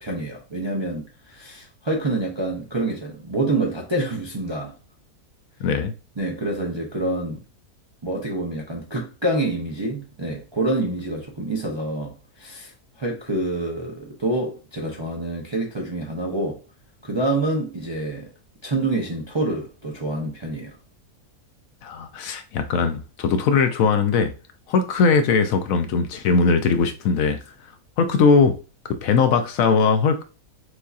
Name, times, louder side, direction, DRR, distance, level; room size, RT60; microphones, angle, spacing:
voice 1, 0.0-4.7 6.2-7.4 8.0-16.6 17.0-18.3 18.6-20.7, right 2 dB, 30° right, 0.5 m, -27 dB
voice 2, 5.6-5.9 21.8-24.3 24.7-27.4 28.0-28.6 28.8-30.2, left 5 dB, 70° left, 0.9 m, -20 dB
6.1 x 2.7 x 2.4 m
omnidirectional pair, 1.6 m